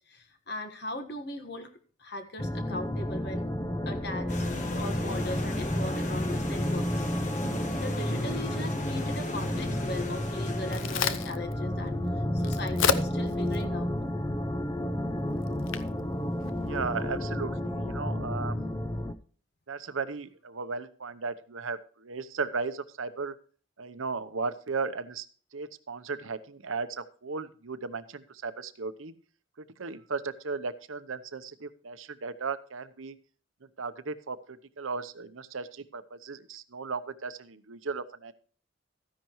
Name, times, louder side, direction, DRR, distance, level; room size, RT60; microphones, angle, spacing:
voice 1, 0.1-1.7 2.0-3.5 3.8-4.5 4.7-7.1 7.8-12.0 12.3-14.0, left 1 dB, 55° left, 7 dB, 1.5 m, -39 dB
sound 1, 2.4-19.1, left 1 dB, 15° left, 0.5 m, -31 dB
sound 2, 4.3-11.2, left 1 dB, 40° left, 1.3 m, -37 dB
Crack, 10.3-17.2, left 6 dB, 85° left, 0.7 m, -35 dB
voice 2, 16.6-18.6 19.7-23.4 23.8-25.3 25.5-29.1 29.8-33.2 33.8-38.3, right 4 dB, 90° right, 12 dB, 0.8 m, -36 dB
13.5 x 10.5 x 3.1 m, 0.42 s
head